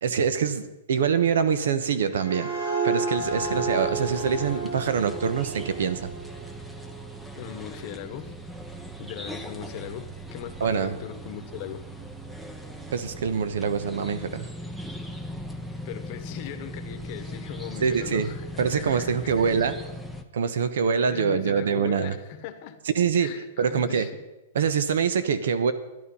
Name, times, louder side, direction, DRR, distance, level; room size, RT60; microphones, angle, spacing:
voice 1, 0.0-2.5 2.8-6.1 10.6-11.0 12.9-14.5 17.8-18.3 18.6-19.7 20.3-22.1 22.9-23.3 23.6-24.1 24.5-25.7, right 6 dB, 75° right, 13 dB, 1.1 m, -24 dB
sound 1, 1.8-7.3, right 3 dB, 55° right, 3.7 m, -32 dB
sound 2, 3.2-20.2, equal, 5° right, 0.7 m, -39 dB
voice 2, 7.3-8.3 9.0-11.8 15.8-19.6 21.1-22.8 23.2-24.1, left 10 dB, 30° left, 8 dB, 1.1 m, -39 dB
12.5 x 11.0 x 5.6 m, 1.0 s
supercardioid pair, 175°, 0 cm